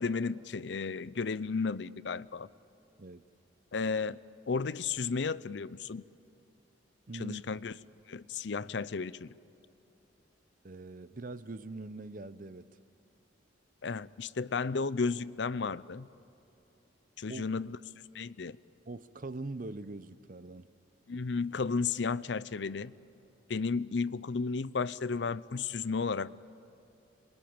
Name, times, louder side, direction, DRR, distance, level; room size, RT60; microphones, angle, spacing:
voice 1, 0.0-2.5 3.7-4.2 4.5-6.0 7.1-7.7 8.1-9.3 13.8-16.1 17.2-17.8 18.1-18.6 21.1-22.9 23.5-26.3, left 4 dB, 70° left, 0.6 m, -33 dB
voice 2, 7.1-7.4 10.6-12.7 17.3-17.4 18.9-20.7, right 2 dB, 45° right, 0.7 m, -42 dB
27.0 x 23.0 x 8.8 m
head